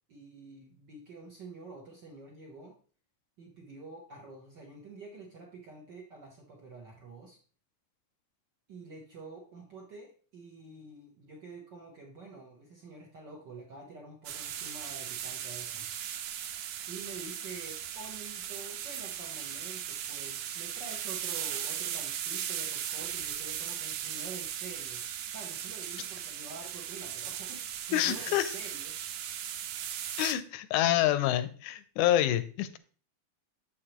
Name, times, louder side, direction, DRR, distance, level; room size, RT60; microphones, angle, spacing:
voice 1, 0.1-2.8 3.4-7.4 8.7-15.9 16.9-29.3, right 3 dB, 70° right, -1 dB, 1.0 m, -48 dB
sound 1, 14.3-30.3, right 10 dB, 90° right, 2.3 m, -38 dB
voice 2, 27.9-28.5 30.2-32.8, left 12 dB, 80° left, 13 dB, 2.1 m, -27 dB
7.4 x 6.5 x 2.9 m, 0.40 s
omnidirectional pair, 3.6 m